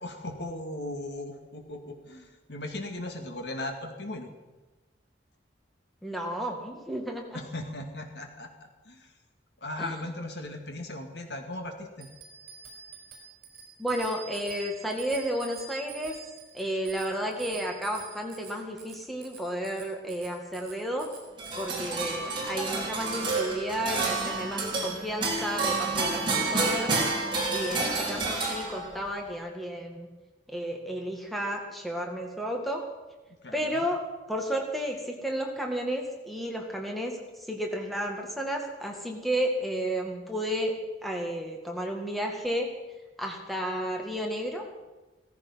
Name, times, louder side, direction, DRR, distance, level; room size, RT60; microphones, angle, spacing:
voice 1, 0.0-4.3 7.3-9.1 9.6-12.1 33.4-33.9, left 1 dB, 65° left, 4 dB, 2.2 m, -38 dB
voice 2, 6.0-7.4 9.8-10.0 13.8-16.2 16.5-21.1 21.5-27.0 27.5-30.1 30.5-32.8 33.5-34.0 34.3-37.2 37.5-40.7 41.0-42.7 43.2-44.6, equal, ahead, 1 dB, 1.9 m, -32 dB
Bicycle bell, 12.0-21.7, right 6 dB, 55° right, 4.5 m, -46 dB
sound 1, 21.4-29.1, right 3 dB, 25° right, 3.7 m, -29 dB
17.0 x 14.5 x 5.8 m, 1.1 s
head